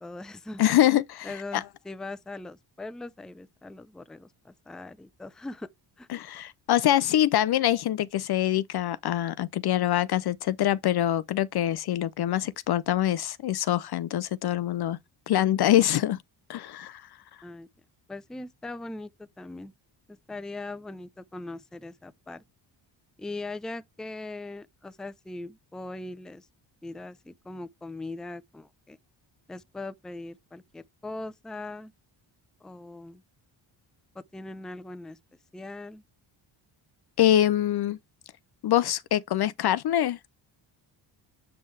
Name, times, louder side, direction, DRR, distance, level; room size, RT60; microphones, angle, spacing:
voice 1, 0.0-0.6 1.2-5.7 6.0-6.1 17.4-17.7 18.1-19.7 20.1-22.4 23.2-26.5 26.8-29.0 29.5-31.9 32.6-33.2 34.1-35.2 35.5-36.0, left 2 dB, ahead, 0.5 m, -40 dB
voice 2, 0.6-1.6 6.1-15.0 15.3-16.2 16.5-17.0 37.2-38.0 38.6-40.2, left 12 dB, 55° left, 0.5 m, -24 dB
7.8 x 5.4 x 3.2 m
cardioid pair, 70°, 48 cm